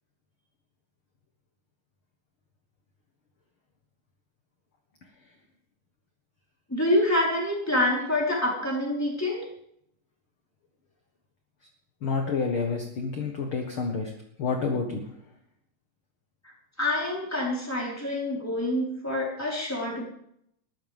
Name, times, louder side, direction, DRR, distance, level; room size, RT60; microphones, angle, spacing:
voice 1, 6.7-9.5 16.4-16.5 16.8-20.0, left 1 dB, 5° left, -4 dB, 4.4 m, -26 dB
voice 2, 12.0-14.1 14.4-15.1, left 4 dB, 50° left, 3 dB, 1.9 m, -29 dB
21.5 x 14.0 x 3.6 m, 0.70 s
omnidirectional pair, 3.9 m